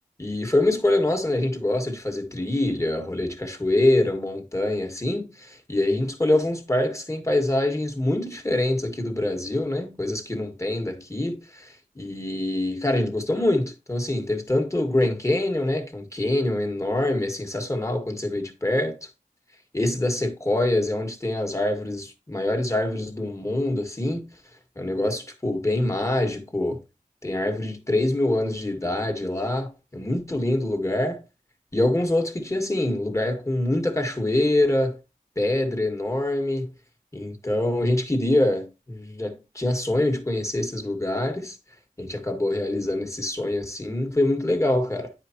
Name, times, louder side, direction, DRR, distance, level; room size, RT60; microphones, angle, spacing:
voice 1, 0.2-19.1 19.7-24.3 24.7-26.8 27.2-31.2 31.7-35.0 35.3-36.7 37.1-41.6 42.0-45.1, left 1 dB, 20° left, 1.6 m, -25 dB
9.8 x 5.0 x 2.9 m
wide cardioid pair, 85°, 15 cm